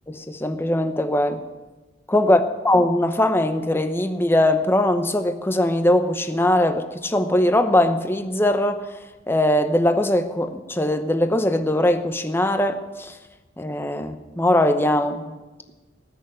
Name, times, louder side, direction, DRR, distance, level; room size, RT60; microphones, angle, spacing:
voice 1, 0.1-1.4 2.1-8.8 9.3-13.1 13.6-15.4, left 1 dB, 10° left, 8 dB, 0.8 m, -21 dB
19.0 x 6.5 x 7.9 m, 1.2 s
head